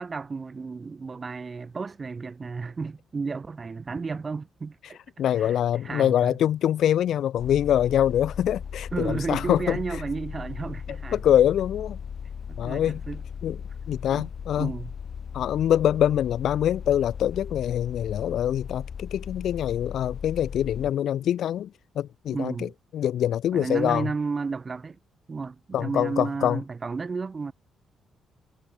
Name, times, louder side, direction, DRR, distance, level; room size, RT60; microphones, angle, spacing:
voice 1, 0.0-5.0 5.4-6.4 8.9-11.2 12.5-13.2 14.1-14.3 14.6-14.9 22.3-22.7 23.5-25.0 25.3-27.5, right 4 dB, 25° right, 2.1 m, -32 dB
voice 2, 5.2-9.8 11.1-12.0 12.6-13.0 13.4-13.6 13.9-14.7 15.3-21.7 22.0-22.5 22.9-24.1 25.7-26.6, left 10 dB, 65° left, 0.4 m, -24 dB
sound 1, 7.4-20.9, left 7 dB, 40° left, 1.5 m, -37 dB
cardioid pair, 170°, 0 cm